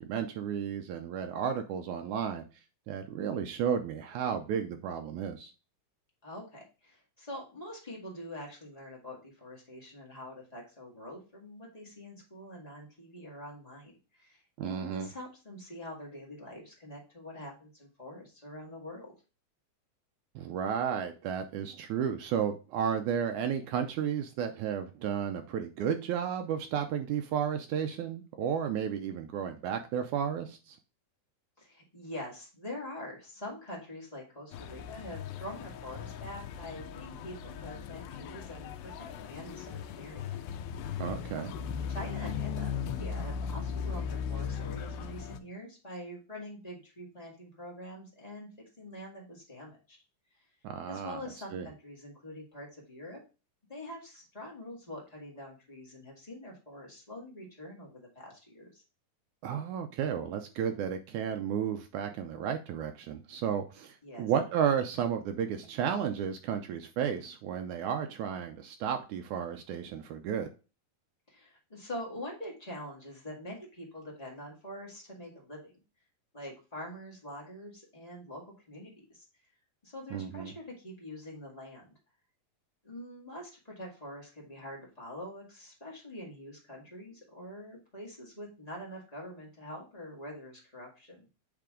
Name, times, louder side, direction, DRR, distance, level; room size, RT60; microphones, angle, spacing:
voice 1, 0.0-2.4 2.9-5.5 14.6-15.1 20.3-30.8 41.0-41.5 50.6-51.2 51.5-51.7 59.4-70.5 80.1-80.5, right 8 dB, 85° right, 6 dB, 1.7 m, -33 dB
voice 2, 6.2-19.1 31.6-40.4 40.8-41.0 41.4-48.5 48.8-50.0 50.3-50.4 50.9-53.2 53.7-58.8 64.0-64.3 71.3-75.8 76.3-79.2 79.8-81.9 82.8-91.3, left 1 dB, 20° left, -3 dB, 1.0 m, -45 dB
sound 1, 34.5-45.4, left 7 dB, 90° left, 2.5 m, -38 dB
8.5 x 3.4 x 3.7 m, 0.32 s
omnidirectional pair, 4.1 m